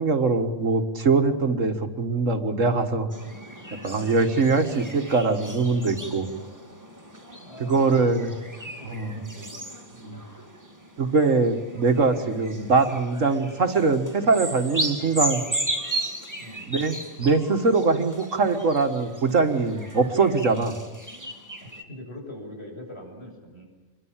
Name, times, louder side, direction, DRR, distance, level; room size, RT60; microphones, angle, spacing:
voice 1, 0.0-3.1 3.8-6.3 7.6-8.3 8.8-9.2 10.0-10.2 11.0-15.4 16.7-20.8, right 4 dB, 70° right, 7 dB, 2.1 m, -22 dB
sound 1, 3.1-21.8, right 1 dB, 15° right, 2.7 m, -36 dB
voice 2, 7.4-8.0 8.7-9.6 16.4-16.7 21.6-23.7, left 1 dB, 50° left, 2 dB, 7.5 m, -42 dB
27.5 x 23.0 x 7.4 m, 1.2 s
omnidirectional pair, 1.4 m